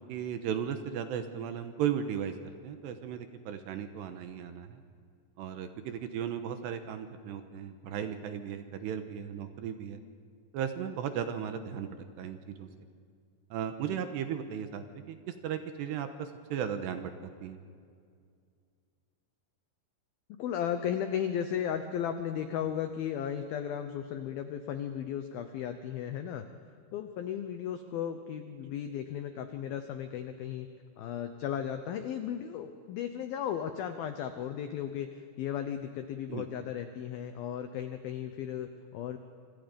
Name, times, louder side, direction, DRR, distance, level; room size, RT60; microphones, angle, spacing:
voice 1, 0.0-2.3 2.6-4.8 5.4-10.0 10.5-12.7 13.5-17.6 36.3-36.4, right 8 dB, 75° right, 8 dB, 2.8 m, -36 dB
voice 2, 20.4-26.5 26.9-30.7 31.0-39.2, left 9 dB, 90° left, 8 dB, 2.1 m, -35 dB
27.5 x 25.5 x 5.3 m, 2.2 s
omnidirectional pair, 5.7 m